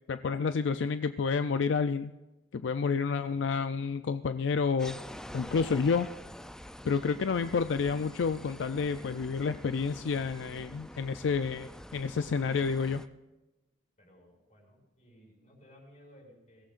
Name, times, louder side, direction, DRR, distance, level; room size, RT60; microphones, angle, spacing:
voice 1, 0.1-2.1 2.5-4.9 5.3-6.1 6.8-13.0, left 5 dB, 75° left, 10 dB, 0.4 m, -29 dB
sound 1, 4.8-13.1, equal, 5° left, 0.4 m, -46 dB
voice 2, 14.0-16.7, equal, 40° left, 0 dB, 6.3 m, -58 dB
22.5 x 17.0 x 2.5 m, 1.0 s
head